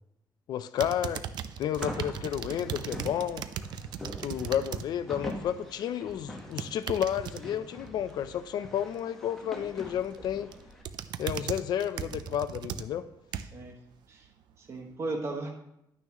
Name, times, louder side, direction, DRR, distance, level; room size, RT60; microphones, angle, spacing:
voice 1, 0.5-1.2 1.6-3.4 4.2-10.5 11.2-13.1, left 10 dB, 65° left, 12 dB, 0.6 m, -31 dB
sound 1, 0.8-4.9 5.2-5.6 6.4-7.4 9.8-10.2 10.5-13.7 14.2-14.3, right 9 dB, 75° right, 0.5 m, -37 dB
sound 2, 1.7-10.8, equal, 5° left, 1.3 m, -44 dB
voice 2, 13.4-13.8 14.1-14.3 14.6-15.5, right 2 dB, 40° right, 2 dB, 1.5 m, -36 dB
11.0 x 9.5 x 3.1 m, 0.80 s
cardioid pair, 150°, 8 cm